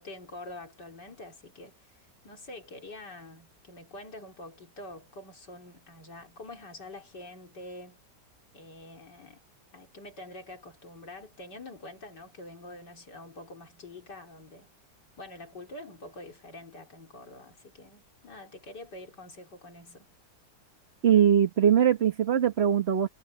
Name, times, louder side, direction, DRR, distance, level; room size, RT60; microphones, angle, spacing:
voice 1, 0.0-8.0 8.5-9.4 9.7-14.7 15.2-20.1, left 2 dB, 85° left, 4.3 m, -46 dB
voice 2, 21.0-23.1, right 9 dB, 40° right, 1.4 m, -21 dB
omnidirectional pair, 1.8 m